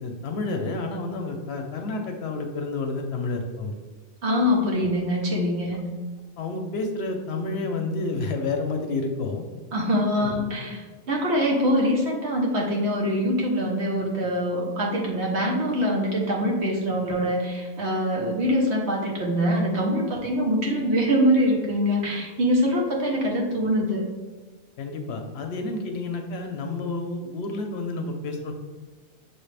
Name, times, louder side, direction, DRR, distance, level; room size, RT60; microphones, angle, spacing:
voice 1, 0.0-3.7 6.4-9.5 10.2-10.4 24.8-28.5, left 3 dB, 65° left, 4 dB, 0.8 m, -30 dB
voice 2, 4.2-5.8 9.7-24.1, equal, 70° right, -1 dB, 1.2 m, -24 dB
6.2 x 2.4 x 3.2 m, 1.3 s
omnidirectional pair, 1.2 m